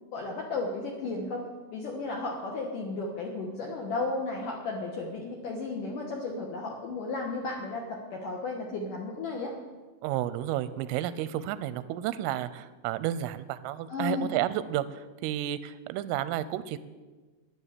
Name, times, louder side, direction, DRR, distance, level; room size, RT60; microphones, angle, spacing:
voice 1, 0.1-1.4 1.7-9.5 13.9-14.3, left 3 dB, 70° left, 1 dB, 2.1 m, -34 dB
voice 2, 10.0-16.8, right 12 dB, 90° right, 15 dB, 3.2 m, -31 dB
12.5 x 10.5 x 8.3 m, 1.3 s
omnidirectional pair, 5.7 m